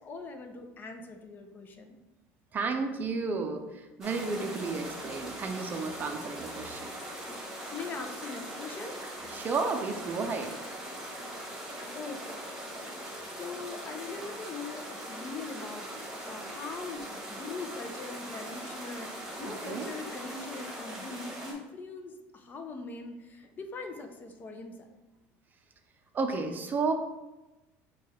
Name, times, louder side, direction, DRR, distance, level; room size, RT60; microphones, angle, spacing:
voice 1, 0.0-2.0 7.2-7.4 7.7-8.9 11.9-12.3 13.4-24.9, left 4 dB, 35° left, 6 dB, 0.5 m, -41 dB
voice 2, 2.5-6.9 9.3-10.5 19.4-19.9 26.1-26.9, right 4 dB, 30° right, 5 dB, 0.5 m, -32 dB
sound 1, 4.0-21.5, right 1 dB, 5° right, 1.2 m, -41 dB
4.6 x 2.3 x 4.2 m, 1.0 s
supercardioid pair, 115°, 6 cm